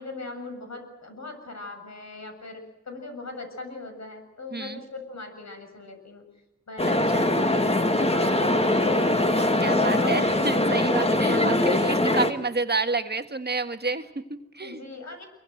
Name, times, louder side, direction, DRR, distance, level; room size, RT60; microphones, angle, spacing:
voice 1, 0.0-6.2 6.7-10.5 11.2-11.6 14.6-15.3, left 3 dB, 65° left, 4 dB, 7.3 m, -39 dB
voice 2, 4.5-4.8 6.8-7.3 9.6-14.8, right 3 dB, 35° right, 7 dB, 1.6 m, -30 dB
sound 1, 6.8-12.3, left 1 dB, 20° left, 2.1 m, -22 dB
26.0 x 23.0 x 7.9 m, 0.91 s
wide cardioid pair, 110°, 30 cm